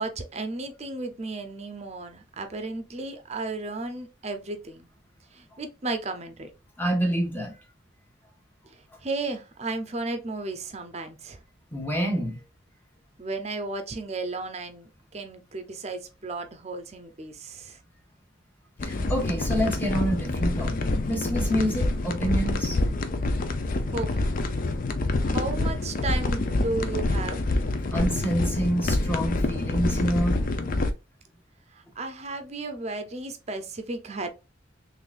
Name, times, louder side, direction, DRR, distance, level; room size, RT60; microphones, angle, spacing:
voice 1, 0.0-4.9 5.3-6.5 8.7-11.4 13.2-17.8 23.9-24.3 25.2-27.5 31.7-34.3, right 3 dB, 35° right, 0.6 m, -34 dB
voice 2, 6.8-7.6 11.7-12.4 18.8-22.8 27.9-30.4, equal, 10° left, 1.1 m, -27 dB
sound 1, 18.8-30.9, left 2 dB, 45° left, 0.5 m, -26 dB
3.8 x 3.2 x 2.5 m
head